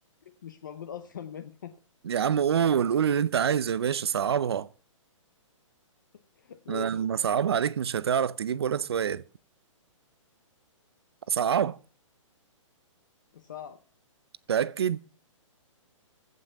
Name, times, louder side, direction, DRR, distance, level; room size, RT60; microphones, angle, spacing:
voice 1, 0.2-1.7 6.4-7.0 13.3-13.8, left 9 dB, 35° left, 0.7 m, -42 dB
voice 2, 2.0-4.7 6.7-9.2 11.3-11.8 14.5-15.0, right 8 dB, 50° right, 0.6 m, -26 dB
15.5 x 5.7 x 8.1 m
hypercardioid pair, 180°, 17 cm